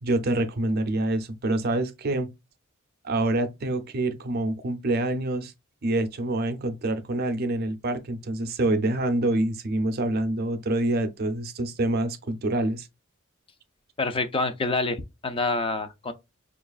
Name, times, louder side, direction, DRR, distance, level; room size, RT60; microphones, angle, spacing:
voice 1, 0.0-2.3 3.0-5.5 5.8-12.9, right 2 dB, 50° right, 0.5 m, -26 dB
voice 2, 14.0-16.1, left 3 dB, 25° left, 0.5 m, -27 dB
5.3 x 2.4 x 2.3 m
head